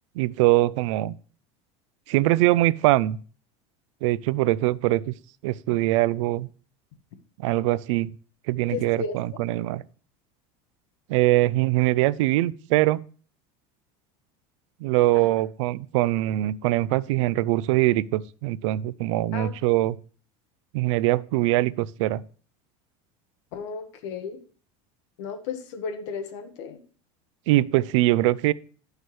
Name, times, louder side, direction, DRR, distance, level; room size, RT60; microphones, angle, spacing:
voice 1, 0.2-1.2 2.1-3.2 4.0-5.1 5.4-6.5 7.4-8.1 8.5-9.8 11.1-13.0 14.8-20.0 20.7-22.2 27.5-28.5, right 17 dB, 80° right, 0.4 m, -22 dB
voice 2, 8.7-9.2 15.1-15.3 19.3-19.5 23.5-24.4 25.2-26.8, left 5 dB, 75° left, 1.1 m, -34 dB
11.0 x 6.4 x 3.1 m
cardioid pair, 175°, 15 cm